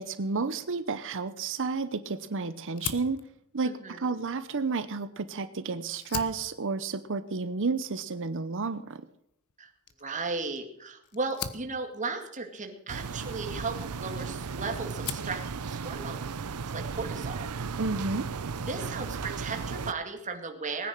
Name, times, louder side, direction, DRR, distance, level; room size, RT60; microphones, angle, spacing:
voice 1, 0.0-3.2 3.5-9.1 17.8-18.3, right 4 dB, 60° right, 12 dB, 0.8 m, -31 dB
Fire, 2.7-5.4 5.8-14.5 14.8-15.4, left 8 dB, 80° left, 1.3 m, -42 dB
voice 2, 3.6-4.1 9.6-9.7 10.0-15.4 15.7-16.2 16.7-17.5 18.6-20.9, right 3 dB, 35° right, 3 dB, 2.3 m, -35 dB
sound 1, 12.9-19.9, right 5 dB, 90° right, 0.7 m, -35 dB
19.5 x 9.9 x 6.6 m, 0.72 s
head